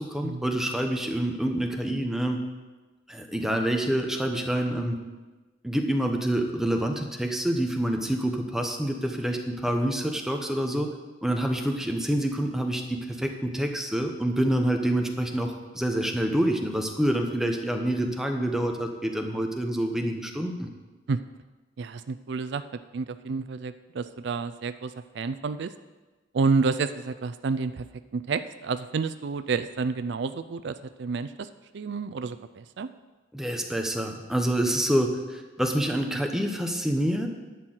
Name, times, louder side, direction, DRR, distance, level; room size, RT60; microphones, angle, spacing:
voice 1, 0.0-2.4 3.1-5.0 5.6-10.9 11.2-20.7 33.3-37.3, right 1 dB, 5° right, 3 dB, 0.9 m, -27 dB
voice 2, 21.8-22.6 22.9-25.7 26.3-27.9 28.1-31.5 31.7-32.9 36.1-36.2, right 4 dB, 65° right, 12 dB, 0.4 m, -29 dB
11.0 x 4.5 x 7.9 m, 1.2 s
head